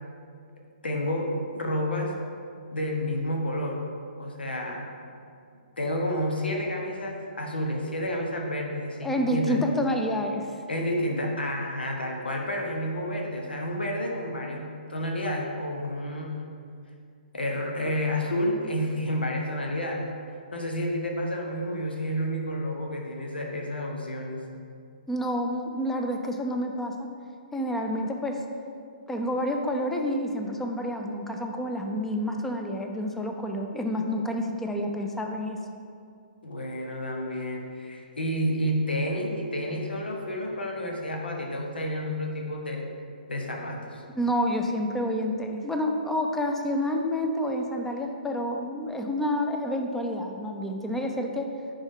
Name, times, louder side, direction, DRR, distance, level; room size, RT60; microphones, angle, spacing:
voice 1, 0.8-2.1 2.7-3.8 4.2-4.9 5.8-9.6 10.7-16.3 17.3-20.0 20.5-24.4 36.4-42.8 43.3-44.0, equal, 90° left, 0 dB, 1.1 m, -30 dB
voice 2, 9.0-10.4 25.1-26.9 27.5-28.4 29.1-35.6 44.1-51.5, equal, 5° left, 3 dB, 0.5 m, -28 dB
9.8 x 3.6 x 3.7 m, 2.4 s
hypercardioid pair, 140°, 5 cm